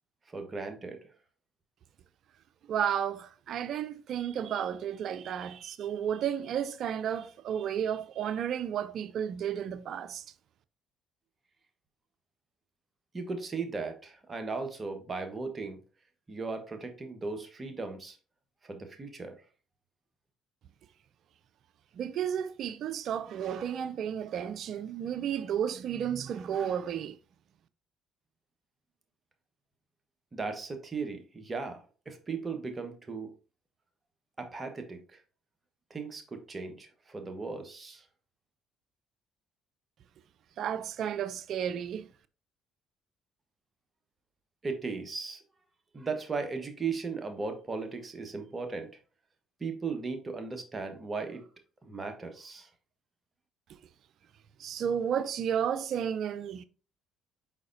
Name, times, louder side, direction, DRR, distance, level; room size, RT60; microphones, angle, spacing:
voice 1, 0.3-1.0 13.1-15.8 16.3-18.2 18.6-19.4 30.3-33.3 34.4-35.2 35.9-38.0 44.6-45.4 45.9-48.9 49.6-51.5 51.8-52.7, right 4 dB, 30° right, 1.1 m, -37 dB
voice 2, 2.7-10.2 21.9-27.2 40.6-42.1 54.6-56.6, right 9 dB, 60° right, 0.4 m, -32 dB
4.9 x 4.0 x 2.6 m
hypercardioid pair, 60°, 0 cm